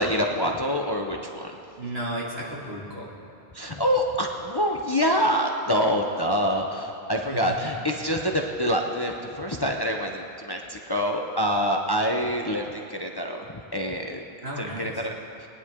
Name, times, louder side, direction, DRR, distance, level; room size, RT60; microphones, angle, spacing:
voice 1, 0.0-1.5 3.5-14.2 14.6-15.2, equal, 25° left, 2 dB, 0.6 m, -26 dB
voice 2, 1.8-3.1 7.3-7.7 14.4-15.0, right 1 dB, 70° right, -5 dB, 2.6 m, -34 dB
21.5 x 9.8 x 3.7 m, 2.7 s
omnidirectional pair, 1.1 m